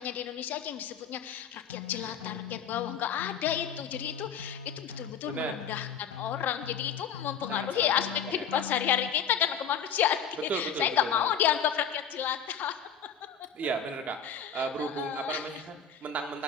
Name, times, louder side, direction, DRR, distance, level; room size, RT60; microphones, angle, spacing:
voice 1, 0.0-12.7 13.0-13.4 14.2-15.6 15.9-16.0, left 10 dB, 60° left, 9 dB, 0.9 m, -31 dB
sound 1, 1.7-9.1, left 8 dB, 85° left, 0.5 m, -41 dB
voice 2, 1.9-2.6 5.3-5.6 7.5-7.9 8.2-8.6 10.5-11.3 13.5-14.2 14.5-15.7 16.0-16.4, right 5 dB, 45° right, 5 dB, 1.5 m, -35 dB
22.0 x 11.5 x 2.3 m, 1.2 s
hypercardioid pair, 60°, 4 cm